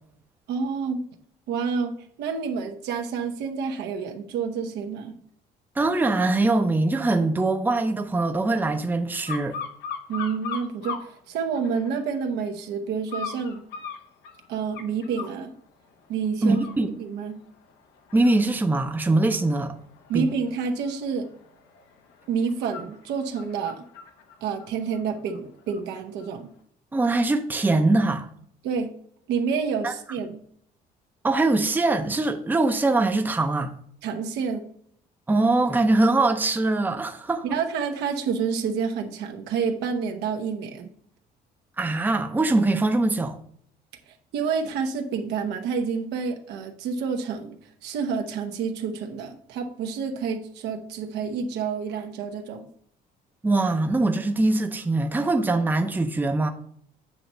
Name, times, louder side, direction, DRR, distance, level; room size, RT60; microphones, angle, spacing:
voice 1, 0.5-1.0 1.5-1.9 2.2-5.2 10.1-13.6 14.5-15.5 16.1-16.6 17.0-17.4 20.1-21.3 22.3-23.8 24.4-26.5 28.6-28.9 29.3-30.4 34.0-34.7 37.4-40.9 44.3-47.6 47.8-52.7, right 6 dB, 85° right, 1.0 m, -28 dB
voice 2, 5.8-9.6 16.4-16.9 18.1-19.7 20.1-20.3 26.9-28.3 29.8-29.9 31.2-33.7 35.3-37.4 41.8-43.4 53.4-56.5, right 2 dB, 10° right, 0.6 m, -22 dB
sound 1, 9.3-11.1 11.5-12.2 13.1-15.4 15.9-16.1 16.5-25.8 26.2-26.3, left 6 dB, 80° left, 1.1 m, -39 dB
7.8 x 3.0 x 5.4 m
cardioid pair, 110°, 17 cm